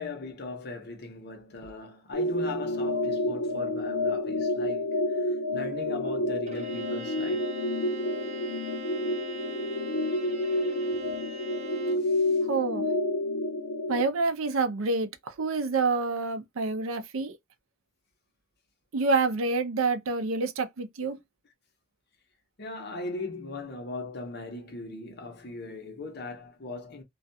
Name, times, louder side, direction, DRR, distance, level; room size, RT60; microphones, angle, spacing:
voice 1, 0.0-7.5 12.0-12.4 22.6-27.0, left 2 dB, 55° left, 0.8 m, -39 dB
sound 1, 2.1-14.0, left 1 dB, 85° left, 0.8 m, -29 dB
Bowed string instrument, 6.5-12.1, equal, 35° right, 0.8 m, -42 dB
voice 2, 12.5-12.9 13.9-17.4 18.9-21.2, right 3 dB, 85° right, 0.5 m, -27 dB
2.4 x 2.2 x 2.6 m
head